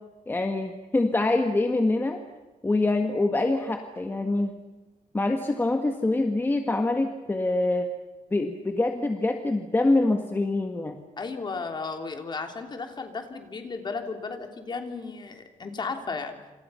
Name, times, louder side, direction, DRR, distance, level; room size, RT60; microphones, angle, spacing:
voice 1, 0.3-2.2 2.6-4.5 5.1-7.9 8.3-11.0, left 2 dB, 15° left, 5 dB, 1.6 m, -25 dB
voice 2, 11.2-16.5, left 4 dB, 35° left, 5 dB, 3.3 m, -34 dB
28.0 x 27.5 x 5.8 m, 1.2 s
wide cardioid pair, 150°, 13 cm